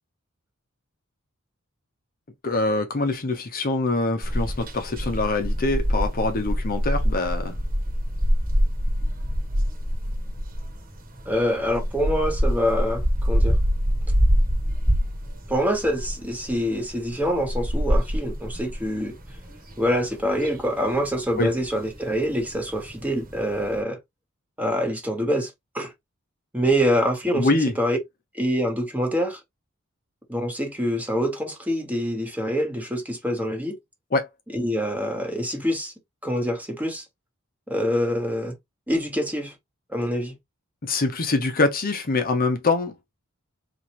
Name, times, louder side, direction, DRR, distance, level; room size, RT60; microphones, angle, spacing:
voice 1, 2.4-7.6 21.4-21.5 27.4-27.7 34.1-34.3 40.8-42.9, left 3 dB, 45° left, 0.8 m, -24 dB
sound 1, 4.2-23.8, equal, 45° right, 1.4 m, -25 dB
voice 2, 11.3-13.6 15.5-19.2 19.8-24.0 24.6-25.9 26.5-28.0 28.3-29.4 30.3-33.8 34.5-35.9 36.2-37.0 37.7-38.6 38.9-39.5 39.9-40.4, equal, 10° right, 1.1 m, -25 dB
4.2 x 3.0 x 2.9 m
head